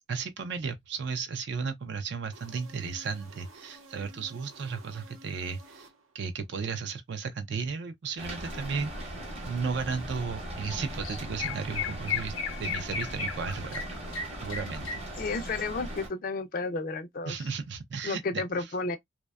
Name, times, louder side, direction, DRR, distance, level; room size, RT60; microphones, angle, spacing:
voice 1, 0.1-5.9 6.1-9.2 9.5-12.3 12.6-13.8 14.4-15.0 17.3-18.7, right 5 dB, 55° right, 0.4 m, -34 dB
sound 1, 2.3-6.4, right 2 dB, 85° right, 0.7 m, -53 dB
Rain, 8.2-16.1, right 1 dB, 30° right, 0.8 m, -39 dB
Chirp tweet, 10.6-10.8 11.0-15.6, left 6 dB, 85° left, 0.6 m, -35 dB
voice 2, 15.2-17.5 18.0-19.0, left 3 dB, 40° left, 0.4 m, -32 dB
2.6 x 2.1 x 2.2 m
head